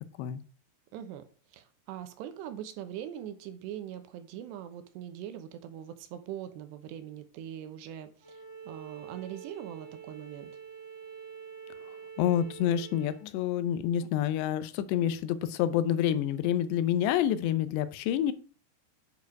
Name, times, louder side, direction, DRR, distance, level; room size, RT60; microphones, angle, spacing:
voice 1, 0.9-10.5, right 10 dB, 85° right, 9 dB, 3.0 m, -42 dB
Bowed string instrument, 8.2-13.2, right 7 dB, 25° right, 0.6 m, -46 dB
voice 2, 12.2-18.3, left 10 dB, 85° left, 13 dB, 2.9 m, -28 dB
9.1 x 4.8 x 4.6 m, 0.37 s
omnidirectional pair, 4.9 m